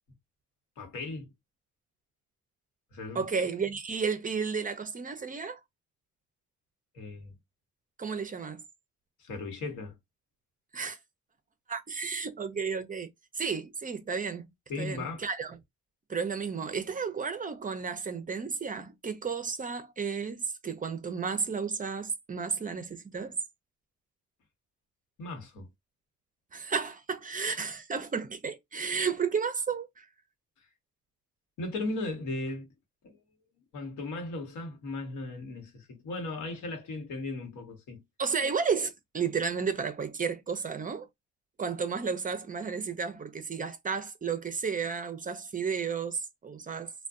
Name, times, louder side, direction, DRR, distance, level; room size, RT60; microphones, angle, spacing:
voice 1, 0.8-1.3 2.9-3.3 6.9-7.4 9.2-10.0 14.7-15.2 25.2-25.7 31.6-32.7 33.0-33.2 33.7-38.0, left 2 dB, 80° left, 1.1 m, -37 dB
voice 2, 3.1-5.6 8.0-8.6 10.7-11.0 11.7-14.5 14.8-15.6 16.1-23.4 26.5-30.1 38.2-41.1 41.6-46.9, right 5 dB, 30° right, 0.5 m, -32 dB
2.5 x 2.2 x 2.4 m
cardioid pair, 90°, 30 cm